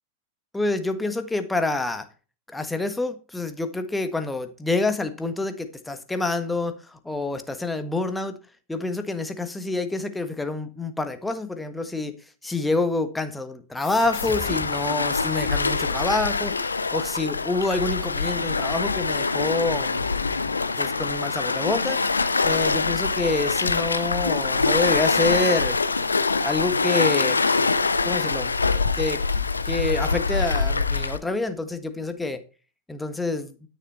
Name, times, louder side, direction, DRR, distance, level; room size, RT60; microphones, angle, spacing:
voice 1, 0.5-2.1 2.5-8.3 8.7-12.1 12.4-20.1 20.8-22.0 22.4-25.8 26.4-27.4 28.0-28.5 29.0-29.2 29.7-32.4 32.9-33.5, left 3 dB, 5° left, 1.4 m, -27 dB
sound 1, 13.8-17.0, left 8 dB, 35° left, 1.5 m, -41 dB
Waves surf, 14.0-31.2, left 4 dB, 80° left, 0.8 m, -24 dB
12.0 x 6.8 x 4.3 m
figure-of-eight pair, 90°, 0 cm